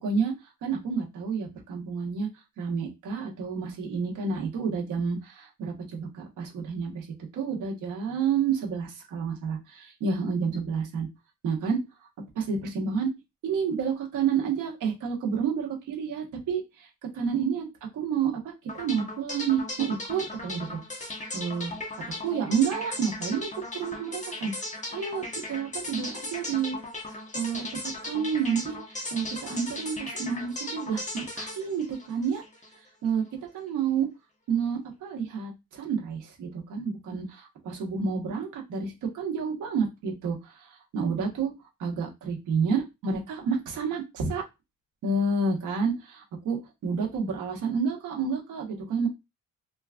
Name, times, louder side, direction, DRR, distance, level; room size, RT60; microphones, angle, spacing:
voice 1, 0.0-0.3 0.6-2.3 2.6-7.1 7.3-11.1 11.4-11.8 12.3-13.1 13.4-16.9 17.1-17.7 17.9-20.8 21.3-21.7 22.2-24.5 24.9-26.8 27.3-32.4 33.0-33.2 33.5-34.1 34.5-41.5 41.8-44.4 45.0-49.1, right 6 dB, 85° right, 0 dB, 1.4 m, -29 dB
sound 1, 18.7-32.8, left 2 dB, 25° left, 1.3 m, -37 dB
3.4 x 3.0 x 2.5 m, 0.23 s
cardioid pair, 90°, 30 cm